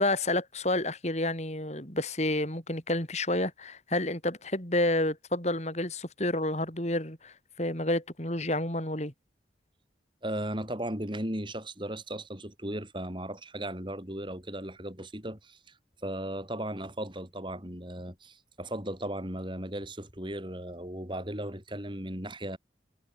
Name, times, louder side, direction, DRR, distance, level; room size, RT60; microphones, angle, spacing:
voice 1, 0.0-9.1, left 1 dB, 40° left, 5.8 m, -29 dB
voice 2, 10.2-15.6 16.0-22.6, right 1 dB, 25° right, 6.9 m, -36 dB
head